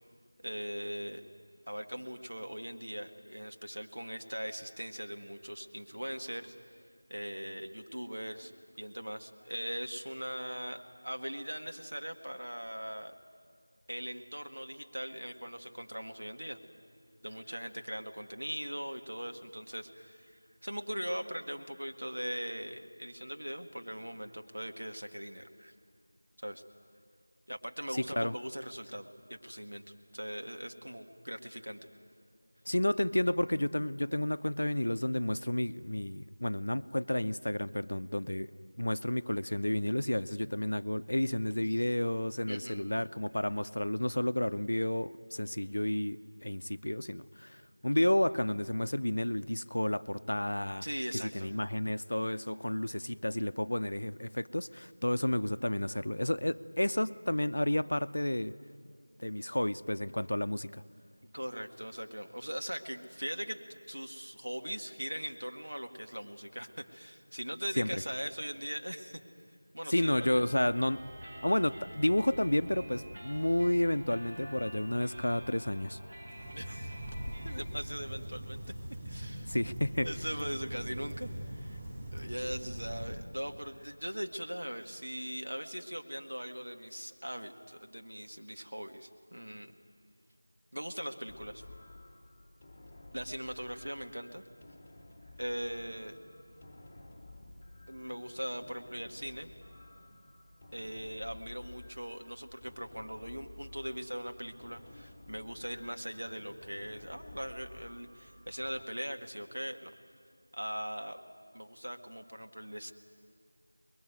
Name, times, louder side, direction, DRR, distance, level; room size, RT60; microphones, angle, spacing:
voice 1, 0.4-1.2 1.7-6.5 7.1-13.1 13.9-16.6 17.2-25.7 26.4-26.6 27.5-29.8 30.1-31.8 41.7-41.8 42.5-42.9 50.8-51.5 61.3-63.6 63.9-69.2 69.7-70.4 76.5-77.0 77.4-78.6 79.1-79.6 80.0-81.8 82.1-89.7 90.7-91.6 93.1-94.4 95.4-96.2 97.9-99.5 100.7-109.9 110.5-111.2 111.5-112.9, equal, 75° right, 5 dB, 2.0 m, -40 dB
voice 2, 32.7-38.5 38.8-50.8 51.1-58.6 58.8-58.9 59.2-60.8 67.8-68.0 69.9-71.1 71.4-76.0 79.5-80.1, left 1 dB, 55° left, 14 dB, 0.6 m, -31 dB
sound 1, 70.0-77.6, right 1 dB, 25° right, 2.1 m, -47 dB
sound 2, 76.3-83.1, right 1 dB, 10° right, 4.1 m, -41 dB
sound 3, 91.3-108.8, left 1 dB, 10° left, 1.1 m, -53 dB
24.5 x 21.5 x 9.4 m, 2.1 s
figure-of-eight pair, 175°, 0 cm